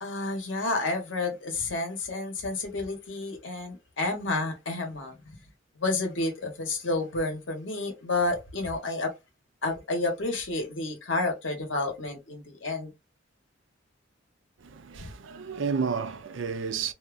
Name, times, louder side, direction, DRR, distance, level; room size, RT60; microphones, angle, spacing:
voice 1, 0.0-5.4 5.8-9.1 9.6-12.9 15.0-15.1, left 2 dB, 75° left, 1.1 m, -30 dB
voice 2, 14.6-16.9, right 5 dB, 75° right, 0.5 m, -31 dB
2.7 x 2.3 x 2.3 m
head